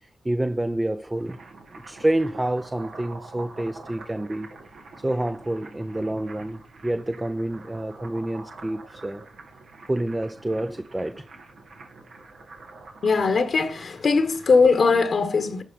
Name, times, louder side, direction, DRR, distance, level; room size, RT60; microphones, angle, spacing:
voice 1, 0.0-1.4 1.8-4.5 5.0-9.2 9.9-11.3, right 1 dB, 20° right, 0.6 m, -28 dB
sound 1, 0.9-14.8, right 3 dB, 80° right, 2.5 m, -46 dB
voice 2, 13.0-15.6, left 4 dB, 60° left, 1.1 m, -20 dB
11.5 x 4.9 x 5.3 m
cardioid pair, 65°, 0 cm